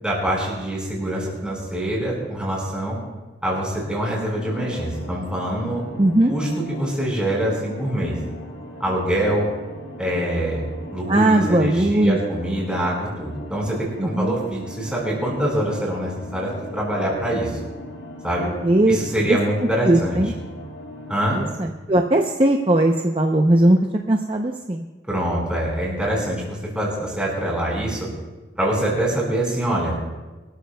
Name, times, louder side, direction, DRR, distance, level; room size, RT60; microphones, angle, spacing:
voice 1, 0.0-3.0 3.4-6.0 6.3-8.1 8.8-9.5 10.0-17.5 18.2-18.5 18.9-20.2 21.1-21.4 25.1-28.1 28.6-29.9, right 1 dB, 5° right, -4 dB, 4.7 m, -24 dB
sound 1, 4.3-21.2, left 1 dB, 80° left, 4.4 m, -39 dB
voice 2, 6.0-6.3 11.1-12.2 14.0-14.4 18.6-19.0 19.3-19.4 19.8-20.3 21.3-23.8 24.1-24.8, right 1 dB, 30° right, 3 dB, 0.6 m, -18 dB
24.5 x 13.5 x 2.3 m, 1.2 s
head